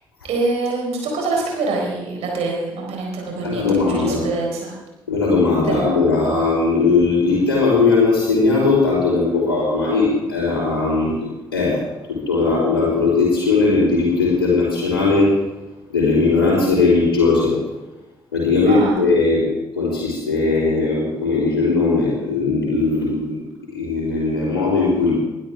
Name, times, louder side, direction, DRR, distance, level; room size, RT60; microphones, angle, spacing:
voice 1, 0.3-4.7 5.7-6.0 18.6-19.0, right 3 dB, 60° right, -1 dB, 4.4 m, -25 dB
voice 2, 3.4-4.3 5.1-15.6 15.9-17.6 18.3-19.4 19.8-23.4 23.7-25.1, left 3 dB, 85° left, -9 dB, 3.8 m, -18 dB
21.0 x 12.5 x 3.6 m, 1.0 s
figure-of-eight pair, 40°, 12 cm